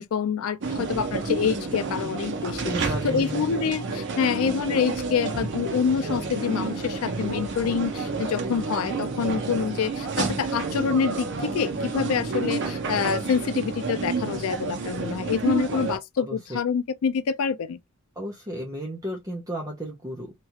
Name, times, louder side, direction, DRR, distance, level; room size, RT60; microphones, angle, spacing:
voice 1, 0.0-2.7 3.0-17.8, left 6 dB, 70° left, 0.4 m, -26 dB
sound 1, 0.6-16.0, right 4 dB, 55° right, 0.7 m, -30 dB
voice 2, 2.6-3.5 16.2-16.4 18.2-20.3, equal, 15° right, 0.6 m, -33 dB
sound 2, 4.2-12.9, equal, 70° right, 1.3 m, -42 dB
2.9 x 2.3 x 2.8 m
head